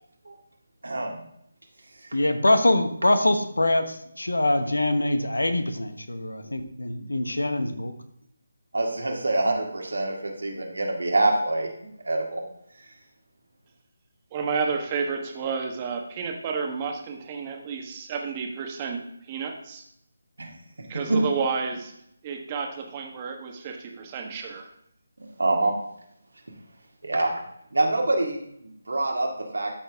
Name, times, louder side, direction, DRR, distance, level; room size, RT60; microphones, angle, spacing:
voice 1, 0.8-1.2 8.7-11.7 12.1-12.4 20.4-20.5 21.1-21.2 25.4-25.7 27.0-27.3 27.7-28.4 28.9-29.7, right 2 dB, 70° right, 1 dB, 2.0 m, -25 dB
voice 2, 2.1-7.9, left 1 dB, 80° left, 9 dB, 1.0 m, -24 dB
voice 3, 14.3-19.0 19.3-19.8 20.9-21.9 22.2-24.7, right 5 dB, 25° right, 2 dB, 1.3 m, -31 dB
13.0 x 4.5 x 3.5 m, 0.73 s
figure-of-eight pair, 155°, 0 cm